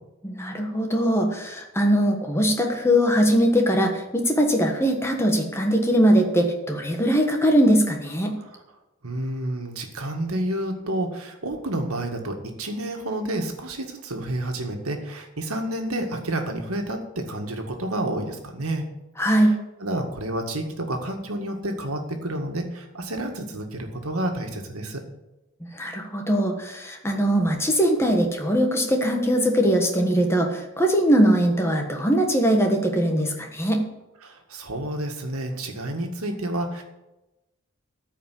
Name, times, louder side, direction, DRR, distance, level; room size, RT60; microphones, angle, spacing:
voice 1, 0.2-8.3 19.2-19.5 25.7-33.8, equal, 10° left, 2 dB, 1.4 m, -21 dB
voice 2, 9.0-18.9 19.4-19.5 19.8-25.0 34.2-36.8, right 1 dB, 90° right, 3 dB, 1.9 m, -30 dB
14.0 x 5.0 x 8.4 m, 0.99 s
head